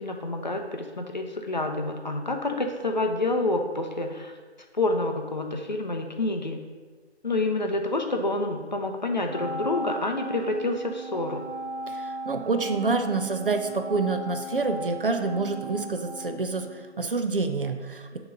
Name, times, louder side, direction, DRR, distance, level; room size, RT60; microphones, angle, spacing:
voice 1, 0.0-4.3 4.7-6.6 7.2-11.4, left 2 dB, 40° left, 4 dB, 0.5 m, -28 dB
Wind instrument woodwind instrument, 9.3-16.9, right 2 dB, 70° right, 0.9 m, -37 dB
voice 2, 11.9-18.2, right 3 dB, 55° right, 6 dB, 0.5 m, -27 dB
6.3 x 3.0 x 5.1 m, 1.4 s
figure-of-eight pair, 160°, 34 cm